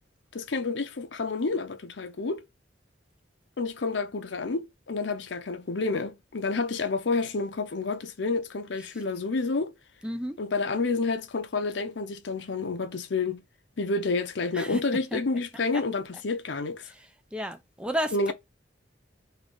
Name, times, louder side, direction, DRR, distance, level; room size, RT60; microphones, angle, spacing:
voice 1, 0.3-2.4 3.6-9.7 10.4-13.4 13.8-16.9 18.1-18.3, left 3 dB, 75° left, 0.6 m, -29 dB
voice 2, 10.0-10.4 14.5-14.8 15.1-15.2 15.7-15.8 16.9-17.1 17.3-18.3, equal, 5° right, 0.5 m, -32 dB
3.3 x 2.5 x 3.8 m
head